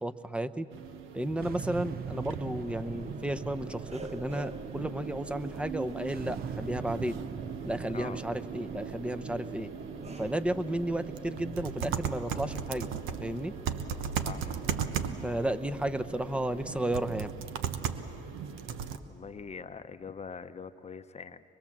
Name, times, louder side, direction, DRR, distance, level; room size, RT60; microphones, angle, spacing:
voice 1, 0.0-0.7 1.1-7.2 7.6-9.7 10.2-12.9 13.2-13.5 15.2-17.3, right 1 dB, 5° right, 11 dB, 0.7 m, -33 dB
sound 1, 0.7-19.0, right 7 dB, 90° right, 1.0 m, -39 dB
sound 2, 1.4-17.8, right 6 dB, 50° right, 0.7 m, -42 dB
sound 3, 2.1-17.3, right 2 dB, 30° right, 1.3 m, -48 dB
voice 2, 14.2-14.5 19.1-21.4, left 5 dB, 35° left, 10 dB, 0.7 m, -43 dB
24.0 x 22.0 x 7.3 m, 2.9 s
cardioid pair, 90°, 20 cm